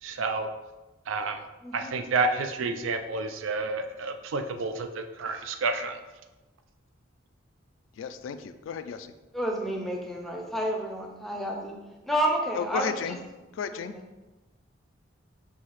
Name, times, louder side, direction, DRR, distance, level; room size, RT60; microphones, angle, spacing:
voice 1, 0.0-0.5 1.1-1.4 1.7-6.0, right 3 dB, 85° right, 6 dB, 0.4 m, -30 dB
voice 2, 1.6-2.0 9.3-11.8 12.0-13.2 13.7-14.0, right 1 dB, ahead, 0 dB, 0.5 m, -30 dB
voice 3, 8.0-9.1 12.5-13.2 13.5-13.9, left 7 dB, 80° left, 10 dB, 0.3 m, -33 dB
5.6 x 2.7 x 3.1 m, 1.1 s
head